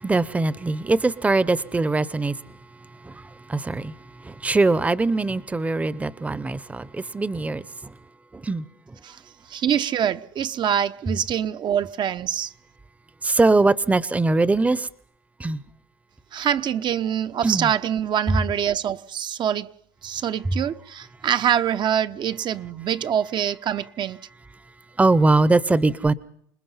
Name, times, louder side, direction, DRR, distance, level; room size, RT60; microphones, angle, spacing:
voice 1, 0.0-2.3 3.0-3.2 3.5-3.9 4.2-7.9 8.3-8.6 13.2-14.9 15.4-15.6 17.4-17.7 25.0-26.1, right 3 dB, 15° right, 0.9 m, -21 dB
voice 2, 9.5-12.5 16.3-19.7 20.0-24.2, right 9 dB, 50° right, 0.9 m, -25 dB
27.0 x 20.0 x 5.7 m
supercardioid pair, 90°, 10 cm